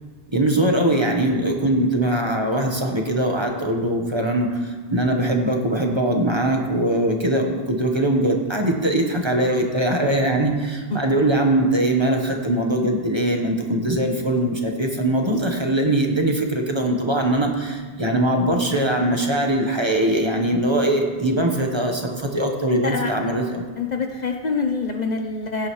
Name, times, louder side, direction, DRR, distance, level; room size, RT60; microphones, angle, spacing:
voice 1, 0.3-23.6, right 1 dB, 25° right, 2 dB, 1.2 m, -21 dB
voice 2, 23.8-25.7, left 4 dB, 50° left, 4 dB, 0.7 m, -25 dB
16.5 x 9.9 x 3.2 m, 1.4 s
omnidirectional pair, 1.1 m